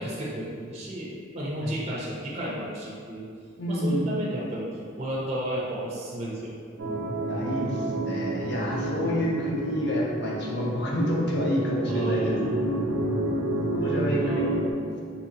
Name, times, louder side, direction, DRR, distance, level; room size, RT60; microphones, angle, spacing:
voice 1, 0.0-3.3 3.7-4.7 5.0-6.6 7.7-8.0 11.8-12.5 14.2-14.8, right 1 dB, 35° right, -5 dB, 0.5 m, -33 dB
voice 2, 3.6-4.2 7.3-12.4 13.7-14.7, equal, 60° left, -3 dB, 0.6 m, -28 dB
sound 1, 6.8-14.7, right 2 dB, 85° right, 0.6 m, -29 dB
4.1 x 2.7 x 2.6 m, 2.1 s
head